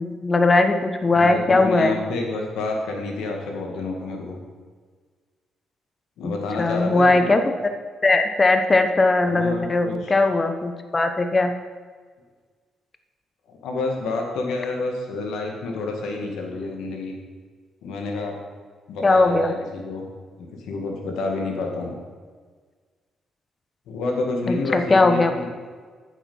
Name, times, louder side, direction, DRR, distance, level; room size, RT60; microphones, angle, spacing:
voice 1, 0.0-2.0 6.2-6.3 6.6-7.5 8.0-11.5 19.0-19.5 24.5-25.3, left 2 dB, 25° left, 7 dB, 0.9 m, -19 dB
voice 2, 1.1-4.4 6.2-7.3 9.2-10.2 13.5-17.1 17.8-18.3 18.9-20.1 20.4-21.9 23.9-25.5, left 3 dB, 85° left, 1 dB, 2.0 m, -29 dB
9.1 x 7.3 x 5.6 m, 1.5 s
cardioid pair, 90°, 0 cm